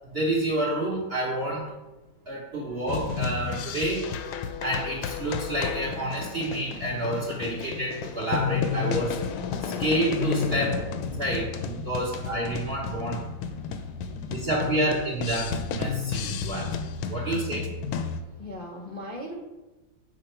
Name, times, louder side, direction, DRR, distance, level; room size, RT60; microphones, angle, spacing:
voice 1, 0.1-1.7 2.3-4.1 4.6-9.2 9.8-10.8 11.0-13.2 14.3-16.7 17.1-17.7, right 1 dB, 40° right, -2 dB, 0.9 m, -29 dB
sound 1, 2.9-18.2, left 6 dB, 85° left, 1.5 m, -32 dB
voice 2, 18.1-19.4, left 1 dB, 35° left, -3 dB, 0.7 m, -40 dB
7.7 x 4.6 x 4.3 m, 1.1 s
omnidirectional pair, 2.2 m